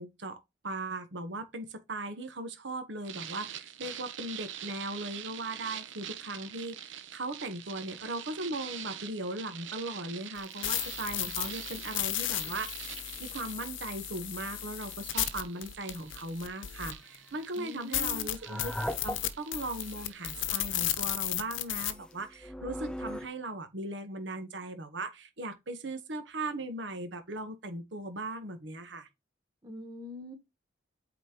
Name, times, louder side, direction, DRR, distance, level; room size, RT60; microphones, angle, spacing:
voice 1, 0.0-18.7 19.0-29.1, right 2 dB, 65° right, 1.1 m, -38 dB
sound 1, 3.0-20.7, right 10 dB, 85° right, 0.8 m, -45 dB
sound 2, 10.4-17.2 17.6-17.7 17.9-21.9, left 12 dB, 85° left, 0.7 m, -34 dB
sound 3, 16.8-17.1 18.2-19.6 20.0-20.1 20.5-20.8 21.5-23.3, equal, 5° left, 0.4 m, -39 dB
voice 2, 17.6-18.3 29.6-30.3, equal, 20° right, 1.0 m, -43 dB
8.5 x 4.1 x 2.9 m
head